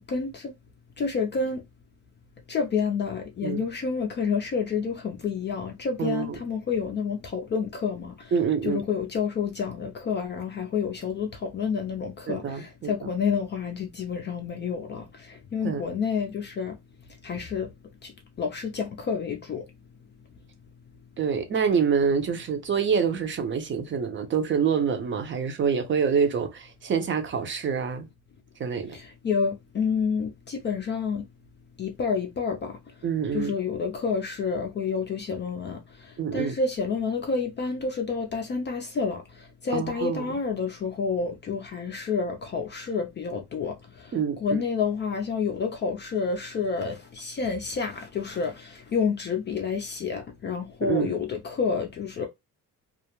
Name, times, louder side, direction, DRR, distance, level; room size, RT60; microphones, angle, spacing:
voice 1, 0.1-0.5 1.0-1.6 2.5-8.3 8.6-16.8 17.2-17.7 18.0-18.1 18.4-19.6 28.9-31.3 31.8-32.8 33.3-44.1 44.4-52.3, left 5 dB, 35° left, 0.4 m, -29 dB
voice 2, 6.0-6.4 8.3-8.8 12.3-12.9 15.6-15.8 21.2-28.1 28.6-29.0 33.0-33.5 36.2-36.6 39.7-40.4 44.1-44.6 50.8-51.1, right 6 dB, 35° right, 0.5 m, -26 dB
2.3 x 2.0 x 2.9 m
cardioid pair, 135°, 33 cm